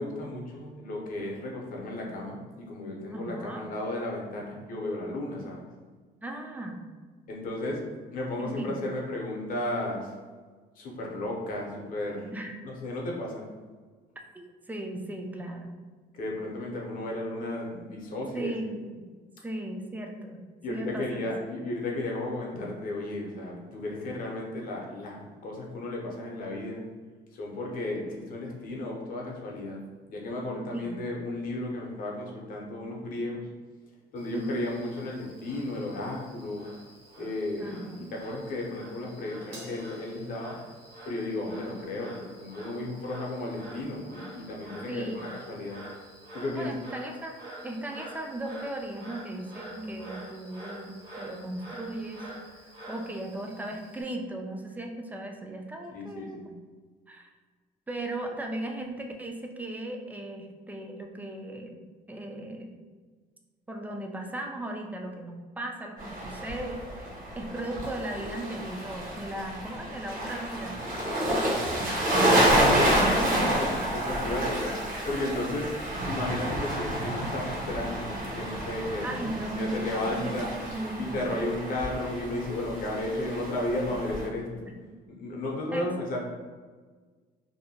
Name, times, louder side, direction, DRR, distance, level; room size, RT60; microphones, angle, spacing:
voice 1, 0.0-5.6 7.3-7.8 8.1-10.1 10.8-12.3 12.6-13.5 16.1-18.5 20.6-26.8 27.3-29.8 30.1-33.5 34.1-36.7 37.2-40.6 41.0-45.8 46.3-46.8 55.9-56.5 72.3-75.7 76.1-80.5 81.0-84.5 85.2-86.2, left 1 dB, 55° left, -1 dB, 0.7 m, -34 dB
voice 2, 3.1-3.6 6.2-6.9 8.4-8.8 12.3-12.6 14.3-15.7 18.3-19.0 19.4-20.4 20.7-21.0 30.5-31.0 34.3-34.7 37.6-38.0 44.9-45.3 46.6-47.4 47.6-52.3 52.6-56.4 57.1-57.3 57.9-61.8 62.1-62.7 63.7-70.8 71.2-72.4 79.0-79.8 80.1-81.5 83.9-84.0 85.7-85.9, right 1 dB, 10° right, 2 dB, 0.3 m, -37 dB
Frog, 34.2-54.0, right 1 dB, 70° right, 1.2 m, -47 dB
Crash cymbal, 39.5-42.1, equal, 85° right, 0.8 m, -50 dB
sound 1, 66.0-84.3, right 1 dB, 55° right, 0.8 m, -29 dB
2.7 x 2.1 x 2.7 m, 1.4 s
cardioid pair, 110°, 17 cm